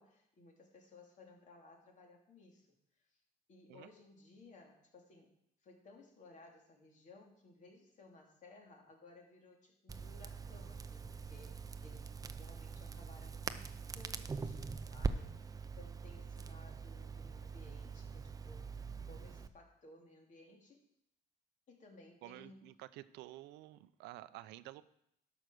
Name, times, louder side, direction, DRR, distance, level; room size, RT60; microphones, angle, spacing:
voice 1, 0.0-2.7 3.5-5.3 5.6-18.7 19.1-20.8 21.7-22.6, left 2 dB, 45° left, 1 dB, 2.6 m, -60 dB
Crackle, 9.9-19.5, right 4 dB, 20° right, 0.6 m, -43 dB
voice 2, 22.2-24.8, right 16 dB, 90° right, 15 dB, 0.5 m, -51 dB
11.5 x 6.2 x 6.2 m, 0.76 s
cardioid pair, 110°, 17 cm